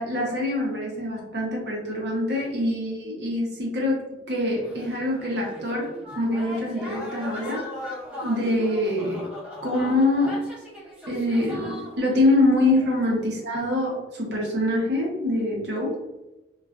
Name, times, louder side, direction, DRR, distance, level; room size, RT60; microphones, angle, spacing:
voice 1, 0.0-4.0 4.3-5.9 6.2-7.6 8.2-9.3 9.6-10.4 11.1-16.0, left 1 dB, 70° right, -2 dB, 0.8 m, -24 dB
sound 1, 4.6-12.3 12.6-13.3, left 1 dB, 5° right, 0.6 m, -39 dB
2.4 x 2.2 x 2.3 m, 1.0 s
head